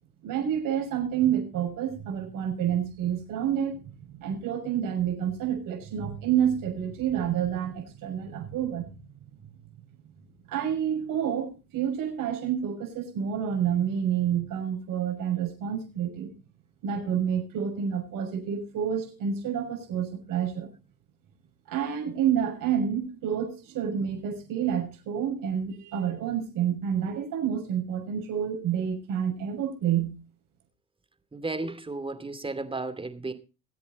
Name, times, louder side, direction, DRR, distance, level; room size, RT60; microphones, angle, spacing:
voice 1, 0.2-8.9 10.5-16.3 16.8-20.7 21.7-30.2, right 9 dB, 60° right, 5.9 m, -29 dB
voice 2, 31.3-33.3, right 3 dB, 15° right, 2.5 m, -33 dB
21.0 x 8.3 x 4.1 m
supercardioid pair, 90°, 38 cm